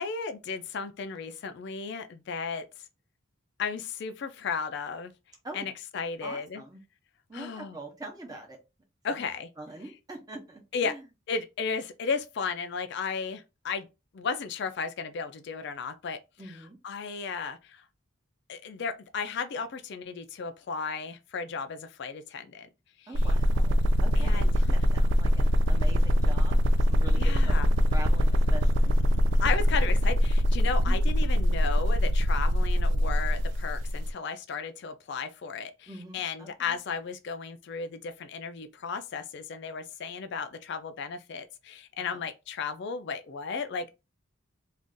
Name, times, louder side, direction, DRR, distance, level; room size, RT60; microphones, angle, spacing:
voice 1, 0.0-2.6 3.6-5.1 5.5-6.6 7.3-7.8 9.0-9.5 10.7-10.9 11.3-13.9 14.1-17.8 18.5-22.7 23.0-23.3 24.2-24.5 27.1-27.7 29.4-43.9, left 5 dB, 55° left, 0.3 m, -34 dB
voice 2, 6.2-6.8 7.3-8.6 9.1-9.2 9.6-11.0 16.4-16.8 23.1-27.6 27.9-28.9 30.8-31.2 35.9-36.7 42.0-42.2, right 2 dB, 20° right, 0.7 m, -44 dB
sound 1, 23.1-34.1, equal, 60° right, 0.4 m, -23 dB
2.5 x 2.4 x 3.6 m
head